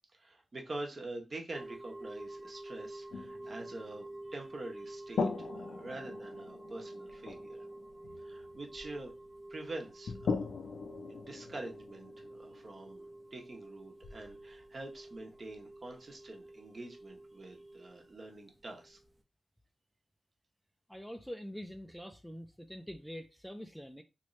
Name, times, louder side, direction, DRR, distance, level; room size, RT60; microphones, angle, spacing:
voice 1, 0.1-4.1 4.3-7.6 8.2-9.1 9.5-10.3 11.1-13.0 13.3-19.0, right 2 dB, 45° right, 1.0 m, -45 dB
sound 1, 1.5-19.2, right 1 dB, 25° right, 0.8 m, -49 dB
sound 2, 3.1-4.7 5.2-9.5 10.0-15.6, left 4 dB, 85° left, 0.5 m, -41 dB
voice 2, 20.9-24.0, equal, ahead, 0.4 m, -45 dB
3.1 x 2.6 x 3.1 m
cardioid pair, 80°, 0 cm